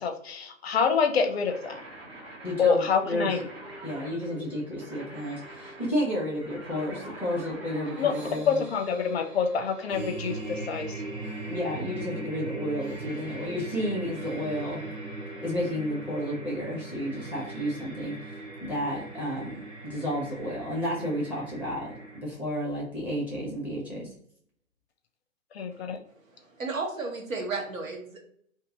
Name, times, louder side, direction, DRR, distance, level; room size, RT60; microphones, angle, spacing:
voice 1, 0.0-1.8 2.6-3.4 8.0-8.1 8.5-10.9 25.5-26.0, left 6 dB, 50° left, 6 dB, 0.5 m, -26 dB
sound 1, 1.5-8.3, right 1 dB, 20° right, 0.6 m, -45 dB
voice 2, 2.4-3.3 3.8-8.6 11.5-14.9 15.4-18.3 18.6-19.6 19.8-24.1, equal, 5° right, -5 dB, 1.0 m, -32 dB
sound 2, 2.9-22.2, right 2 dB, 55° right, 1.4 m, -40 dB
voice 3, 25.7-28.2, right 3 dB, 80° right, 0 dB, 1.2 m, -34 dB
2.6 x 2.6 x 3.8 m, 0.64 s
hypercardioid pair, 130°, 40 cm